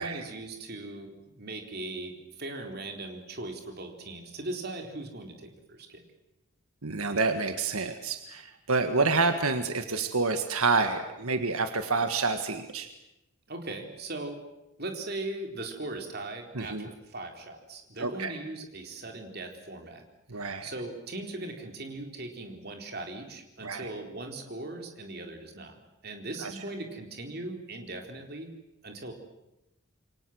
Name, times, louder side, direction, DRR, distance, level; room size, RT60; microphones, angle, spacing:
voice 1, 0.0-6.0 13.5-14.4 14.8-20.0 20.3-28.5 28.8-29.1, right 2 dB, 45° right, 4 dB, 4.1 m, -39 dB
voice 2, 6.8-12.9 16.5-16.9 18.0-18.4 20.3-20.7 23.6-23.9 26.4-26.5, right 4 dB, 85° right, 8 dB, 1.7 m, -28 dB
28.0 x 23.5 x 7.9 m, 0.91 s
head